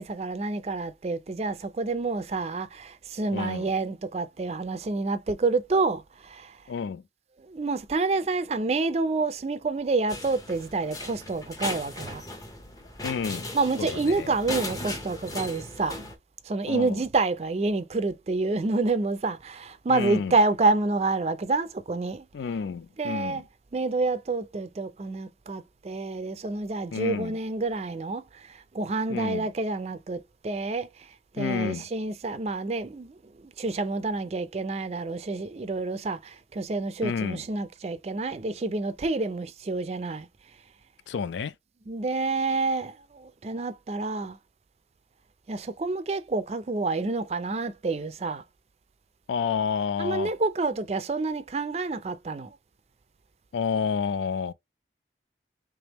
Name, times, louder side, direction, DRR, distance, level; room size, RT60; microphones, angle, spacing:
voice 1, 0.0-6.6 7.4-12.2 13.5-16.0 16.4-22.3 23.0-23.4 23.7-31.1 31.3-40.3 41.9-44.4 45.5-48.4 50.0-52.6, right 3 dB, 35° right, 0.4 m, -28 dB
voice 2, 3.3-3.7 6.7-7.0 13.0-13.5 13.8-14.3 16.7-17.0 19.9-20.4 22.3-23.4 26.9-27.4 29.1-29.5 31.4-31.8 37.0-37.4 41.1-41.5 49.3-50.3 53.5-54.5, left 6 dB, 85° left, 0.4 m, -30 dB
sound 1, 10.1-16.2, left 2 dB, 20° left, 0.7 m, -37 dB
3.5 x 3.4 x 2.9 m
head